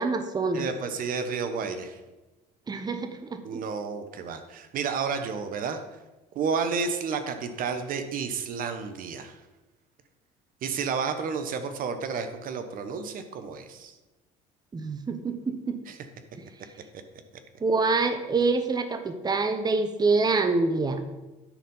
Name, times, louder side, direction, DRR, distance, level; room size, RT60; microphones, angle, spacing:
voice 1, 0.0-0.6 2.7-3.4 14.7-15.8 17.6-21.0, right 3 dB, 25° right, 8 dB, 0.9 m, -26 dB
voice 2, 0.5-2.0 3.4-5.8 6.3-9.4 10.6-13.9 15.9-16.0, right 5 dB, 55° right, 8 dB, 0.9 m, -31 dB
10.0 x 4.3 x 5.5 m, 1.1 s
supercardioid pair, 80°, 17 cm